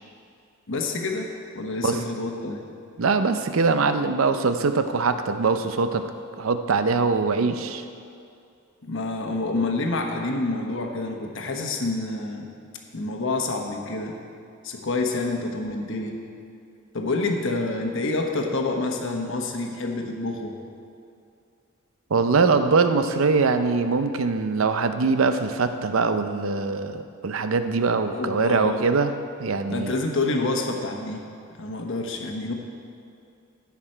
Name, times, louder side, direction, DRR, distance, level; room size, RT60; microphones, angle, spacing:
voice 1, 0.7-2.6 8.8-12.5 12.9-14.2 14.6-16.1 16.9-20.5 28.1-28.8 29.7-31.3 31.6-32.5, left 2 dB, 65° left, 2 dB, 1.1 m, -28 dB
voice 2, 3.0-6.0 6.4-7.8 22.1-29.1 29.4-29.9, right 4 dB, 70° right, 9 dB, 0.6 m, -22 dB
16.0 x 6.0 x 4.5 m, 2.4 s
head